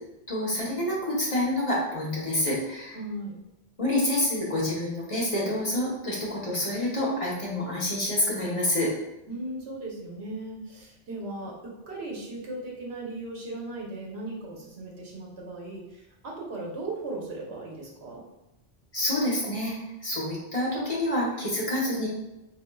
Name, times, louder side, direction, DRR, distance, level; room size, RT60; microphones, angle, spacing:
voice 1, 0.3-3.0 3.8-8.9 18.9-19.7 20.0-22.1, left 1 dB, 35° left, -5 dB, 0.9 m, -27 dB
voice 2, 2.9-3.4 9.3-18.2, right 2 dB, 75° right, -3 dB, 1.1 m, -37 dB
5.0 x 2.5 x 2.2 m, 0.93 s
omnidirectional pair, 1.1 m